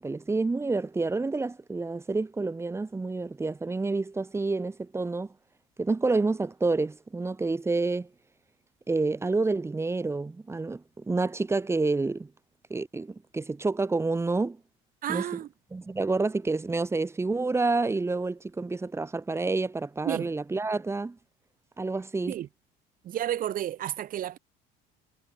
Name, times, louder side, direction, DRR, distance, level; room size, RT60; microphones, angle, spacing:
voice 1, 0.0-5.3 5.8-8.1 8.9-12.3 12.7-14.6 15.1-15.2 15.7-21.2 21.8-22.3, right 3 dB, 15° right, 2.0 m, -28 dB
voice 2, 15.0-15.5 20.0-20.3 22.3-22.5 23.0-24.4, right 11 dB, 50° right, 2.2 m, -31 dB
cardioid pair, 125°, 19 cm